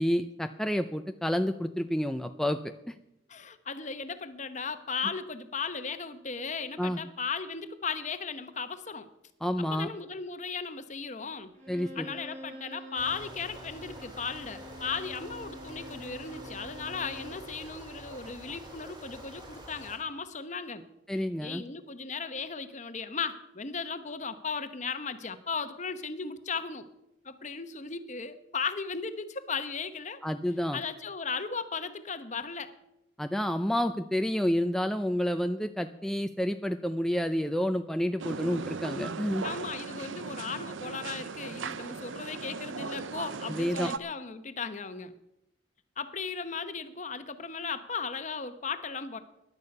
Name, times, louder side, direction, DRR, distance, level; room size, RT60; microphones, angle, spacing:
voice 1, 0.0-2.6 2.9-3.0 6.8-7.0 9.4-9.9 11.7-12.1 21.1-21.6 30.2-30.8 33.2-39.5 43.5-43.9, equal, ahead, 7 dB, 0.4 m, -29 dB
voice 2, 3.3-9.1 9.7-11.5 12.0-20.8 21.4-26.9 27.2-30.2 30.7-32.7 39.4-45.1 46.0-49.2, left 5 dB, 40° left, 11 dB, 1.0 m, -36 dB
Bowed string instrument, 11.5-17.5, equal, 40° right, 4.7 m, -47 dB
sound 1, 12.9-20.0, equal, 25° right, 2.9 m, -47 dB
sound 2, 38.2-44.0, right 4 dB, 85° right, 0.7 m, -38 dB
16.5 x 11.0 x 5.4 m, 0.86 s
head